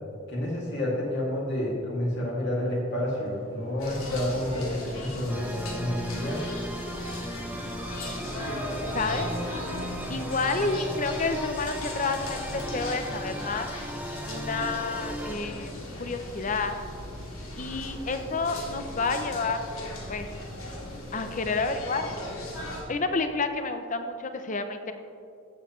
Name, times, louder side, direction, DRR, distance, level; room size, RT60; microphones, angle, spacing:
voice 1, 0.3-6.4, left 1 dB, 55° left, -4 dB, 2.4 m, -29 dB
Truck / Accelerating revving vroom, 3.1-17.5, equal, 65° right, 1.3 m, -46 dB
sound 1, 3.8-22.8, left 1 dB, 90° left, 2.2 m, -37 dB
sound 2, 5.3-15.3, equal, 10° right, 0.4 m, -38 dB
voice 2, 8.9-9.3 10.1-13.7 14.3-16.8 17.6-19.6 20.1-20.3 21.1-22.2 22.9-24.9, left 3 dB, 35° left, 8 dB, 0.6 m, -30 dB
15.5 x 7.2 x 3.1 m, 2.3 s
head